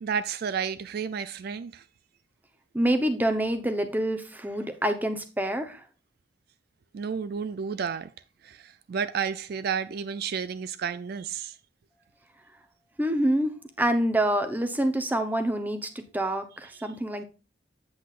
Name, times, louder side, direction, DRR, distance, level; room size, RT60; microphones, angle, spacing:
voice 1, 0.0-1.8 6.9-8.1 8.4-11.6 16.8-16.9, right 6 dB, 55° right, 0.4 m, -31 dB
voice 2, 2.7-5.8 13.0-17.2, right 1 dB, 10° right, 0.8 m, -26 dB
8.3 x 7.9 x 2.4 m
head